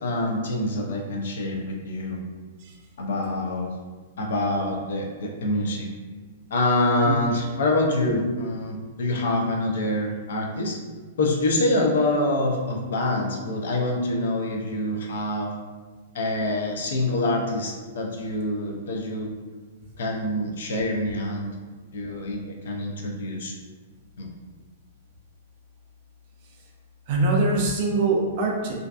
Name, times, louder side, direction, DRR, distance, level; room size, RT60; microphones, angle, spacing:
voice 1, 0.0-2.2 3.0-3.7 4.2-5.9 6.5-10.8 11.2-15.5 16.1-19.3 20.0-21.5 21.9-23.5 24.2-24.3, left 1 dB, 65° left, 1 dB, 0.5 m, -26 dB
voice 2, 27.1-28.8, right 3 dB, 30° right, -1 dB, 0.4 m, -23 dB
2.5 x 2.3 x 2.3 m, 1.4 s
hypercardioid pair, 180°, 0 cm